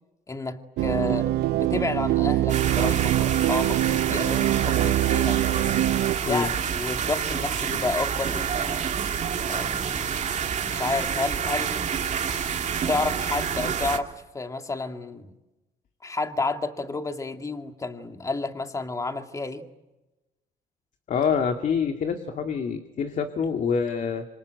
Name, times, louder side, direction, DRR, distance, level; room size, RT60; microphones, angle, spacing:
voice 1, 0.3-1.3 1.6-5.4 6.2-8.8 9.5-10.2 10.6-11.9 12.9-15.4 16.0-19.7, left 3 dB, 20° left, 6 dB, 2.2 m, -30 dB
sound 1, 0.8-6.2, right 14 dB, 75° right, 0.9 m, -24 dB
sound 2, 2.5-14.0, right 7 dB, 45° right, 2.4 m, -28 dB
voice 2, 21.1-24.3, left 6 dB, 50° left, 6 dB, 2.2 m, -26 dB
26.0 x 25.5 x 8.2 m, 1.0 s
cardioid pair, 110°, 17 cm